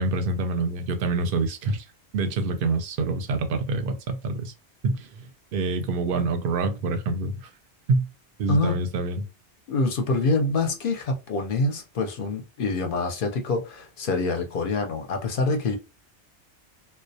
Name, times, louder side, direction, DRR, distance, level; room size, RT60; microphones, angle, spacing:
voice 1, 0.0-1.8 2.1-4.5 4.8-7.5 7.9-8.1 8.4-9.3, right 3 dB, 60° right, 0.7 m, -26 dB
voice 2, 8.5-8.8 9.7-15.8, left 3 dB, 60° left, 0.7 m, -25 dB
2.2 x 2.1 x 2.6 m
omnidirectional pair, 1.2 m